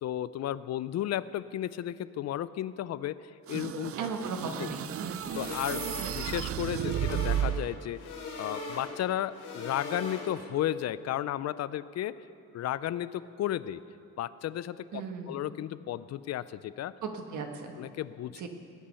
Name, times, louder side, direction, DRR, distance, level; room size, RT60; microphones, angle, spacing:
voice 1, 0.0-3.2 3.5-3.9 4.6-4.7 5.3-8.0 8.4-12.2 12.5-13.8 14.2-17.0 17.7-18.5, left 12 dB, 60° left, 16 dB, 0.5 m, -33 dB
sound 1, 3.5-7.8, right 11 dB, 50° right, 0.5 m, -33 dB
voice 2, 4.0-5.2 14.9-15.4 17.0-17.7 18.4-18.5, right 4 dB, 70° right, 4 dB, 1.6 m, -36 dB
sound 2, 5.2-10.6, left 3 dB, 80° left, 3.3 m, -40 dB
19.5 x 8.6 x 5.6 m, 2.6 s
cardioid pair, 90°, 30 cm